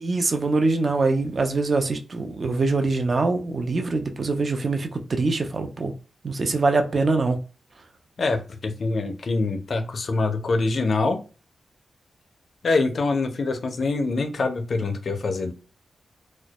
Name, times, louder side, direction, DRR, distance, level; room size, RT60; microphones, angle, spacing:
voice 1, 0.0-5.9 6.2-7.4, right 3 dB, 40° right, 0.3 m, -23 dB
voice 2, 8.2-11.2 12.6-15.5, left 3 dB, 45° left, 0.4 m, -24 dB
2.2 x 2.0 x 2.8 m
wide cardioid pair, 165°, 0 cm